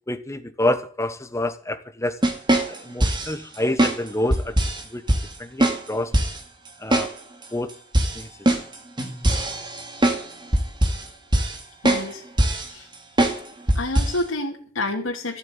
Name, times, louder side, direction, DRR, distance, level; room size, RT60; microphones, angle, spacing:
voice 1, 0.1-2.2 2.7-5.0 5.4-6.1 6.8-7.1 7.5-7.7 8.1-8.3, left 1 dB, 15° left, 1.1 m, -27 dB
sound 1, 2.2-3.3 3.8-4.0 4.3-4.8 5.1-5.2 5.6-5.8 6.1-6.4 6.9-7.1 7.4-7.5 7.9-10.2 10.5-11.0 11.3-11.6 11.8-12.1 12.4-12.7 13.2-13.4 13.7-14.2, right 1 dB, 25° right, 2.3 m, -20 dB
voice 2, 11.8-12.2 12.7-12.9 13.7-15.4, left 2 dB, 90° left, 2.4 m, -28 dB
13.5 x 7.6 x 8.9 m
head